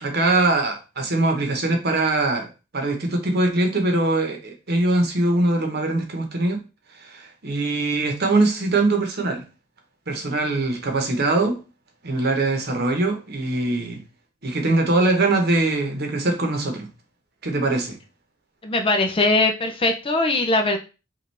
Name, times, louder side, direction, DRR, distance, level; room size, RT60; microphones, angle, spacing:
voice 1, 0.0-2.5 2.7-6.6 7.0-9.4 10.1-11.6 12.0-14.0 14.4-16.9 17.4-18.0, right 2 dB, 55° right, 1.0 m, -22 dB
voice 2, 18.6-20.8, left 2 dB, 25° left, 0.6 m, -20 dB
5.2 x 2.6 x 3.4 m
head